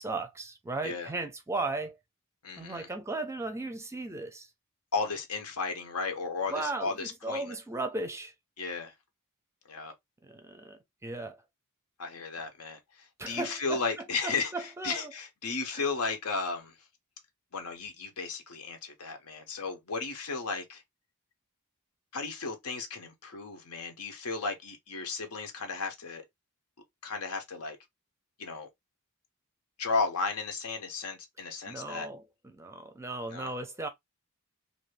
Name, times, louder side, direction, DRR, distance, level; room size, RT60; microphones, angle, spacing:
voice 1, 0.0-2.0 2.6-4.5 6.5-8.3 10.2-11.4 13.2-13.8 14.2-15.1 15.7-15.8 31.7-33.9, right 2 dB, 10° right, 0.5 m, -36 dB
voice 2, 2.4-2.9 4.9-7.6 8.6-8.9 9.7-9.9 12.0-12.8 13.3-16.7 17.5-20.8 22.1-26.2 27.0-27.8 28.4-28.7 29.8-32.1 33.3-33.5, left 4 dB, 80° left, 0.9 m, -34 dB
2.6 x 2.6 x 3.1 m
head